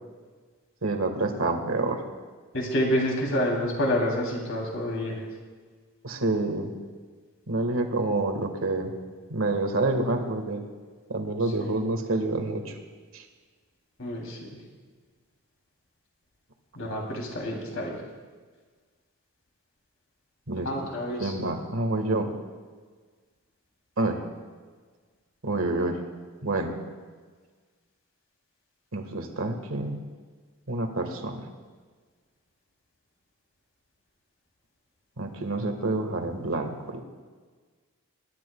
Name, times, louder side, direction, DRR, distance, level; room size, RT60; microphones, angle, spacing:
voice 1, 0.8-2.0 6.0-6.7 7.5-8.9 9.3-10.6 11.1-12.8 13.1-13.2 20.5-20.7 21.2-22.3 24.0-24.2 25.4-26.0 26.4-26.8 28.9-30.0 30.7-31.5 35.2-37.0, right 2 dB, 75° right, 5 dB, 1.6 m, -28 dB
voice 2, 2.5-5.2 11.6-11.7 14.0-14.5 16.7-17.9 20.6-21.3, equal, 70° left, -1 dB, 3.0 m, -28 dB
26.0 x 12.0 x 2.3 m, 1.5 s
head